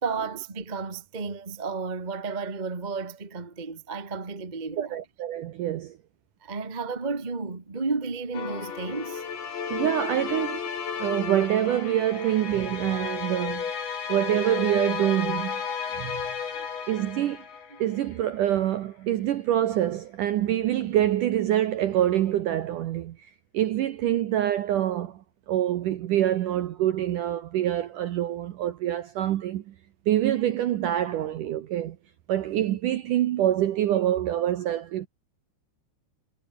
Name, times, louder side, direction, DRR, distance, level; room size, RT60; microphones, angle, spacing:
voice 1, 0.0-5.0 6.4-9.2 17.7-17.8, right 4 dB, 30° right, 0.7 m, -32 dB
voice 2, 4.8-6.0 9.7-10.6 11.0-13.7 14.1-15.6 16.0-16.2 16.9-17.4 17.8-23.2 23.5-29.7 30.1-32.0 32.3-35.1, right 12 dB, 70° right, 2.0 m, -26 dB
sound 1, 8.3-18.1, left 6 dB, 90° left, 7.0 m, -33 dB
omnidirectional pair, 5.0 m